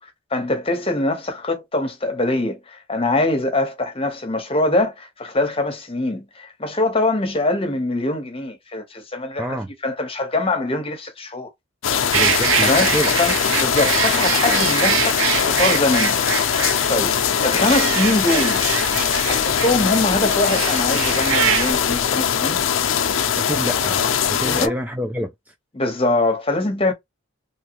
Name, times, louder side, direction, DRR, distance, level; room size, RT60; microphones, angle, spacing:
voice 1, 0.3-11.5 12.6-15.2 15.5-16.2 16.9-18.6 19.3-22.6 24.4-24.7 25.7-26.9, left 2 dB, 30° left, 1.0 m, -23 dB
voice 2, 9.4-9.7 12.1-13.1 23.4-24.0 24.3-25.5, equal, 10° right, 0.3 m, -27 dB
sound 1, 11.8-24.7, left 8 dB, 75° left, 0.5 m, -21 dB
sound 2, 12.1-21.7, right 10 dB, 80° right, 0.4 m, -24 dB
3.2 x 2.3 x 3.0 m
head